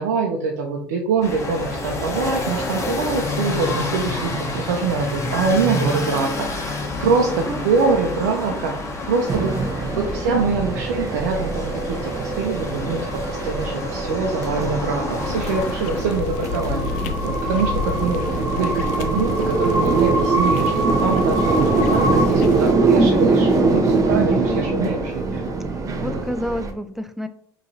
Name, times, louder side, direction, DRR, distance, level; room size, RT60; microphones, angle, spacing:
voice 1, 0.0-9.5 10.0-13.0 13.4-25.4 26.0-26.2, right 4 dB, 90° right, 1 dB, 0.6 m, -24 dB
sound 1, 1.2-16.2, left 2 dB, 35° left, 1.3 m, -29 dB
voice 2, 9.3-10.1 10.5-10.8 25.7-27.3, equal, 5° right, 10 dB, 0.5 m, -31 dB
sound 2, 9.3-26.7, right 3 dB, 40° right, 0.9 m, -22 dB
sound 3, 15.1-22.7, left 7 dB, 90° left, 0.4 m, -31 dB
5.2 x 3.1 x 2.8 m, 0.68 s
supercardioid pair, 75°, 9 cm